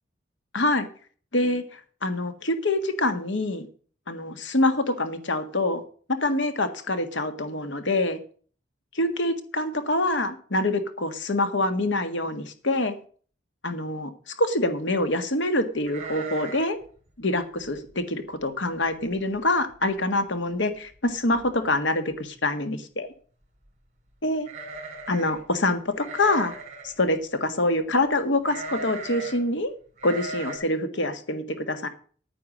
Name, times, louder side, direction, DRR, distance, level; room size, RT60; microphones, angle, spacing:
voice 1, 0.5-0.9 1.3-3.7 4.1-5.8 6.2-8.2 8.9-12.9 13.6-16.8 17.2-23.1 24.2-24.5 25.1-26.6 26.8-29.7 30.0-31.9, left 2 dB, 80° left, 9 dB, 1.6 m, -25 dB
sound 1, 15.9-16.8 17.1-17.2 17.6-17.9 18.5-18.6 18.9-19.4 19.7-19.8 20.9-21.0 21.3-21.7 24.4-25.4 26.0-26.9 28.4-29.4 30.0-30.6, right 3 dB, 40° right, 3.7 m, -38 dB
10.0 x 9.5 x 6.2 m, 0.43 s
head